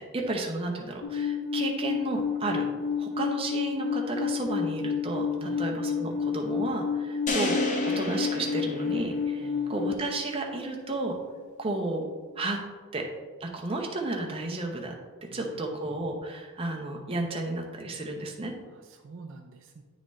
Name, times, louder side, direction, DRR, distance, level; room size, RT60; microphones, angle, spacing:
voice 1, 0.0-2.6 3.0-11.1 11.6-12.0 12.4-12.6 12.9-13.0 13.4-14.9 15.3-18.5, right 2 dB, 25° right, 0 dB, 0.7 m, -32 dB
Alarm, 1.0-9.9, left 6 dB, 65° left, 0.4 m, -30 dB
sound 1, 7.3-9.6, left 1 dB, 35° left, 0.7 m, -31 dB
voice 2, 9.4-9.7 15.3-15.7 18.7-19.8, right 4 dB, 60° right, 4 dB, 0.4 m, -47 dB
9.1 x 3.9 x 3.2 m, 1.4 s
head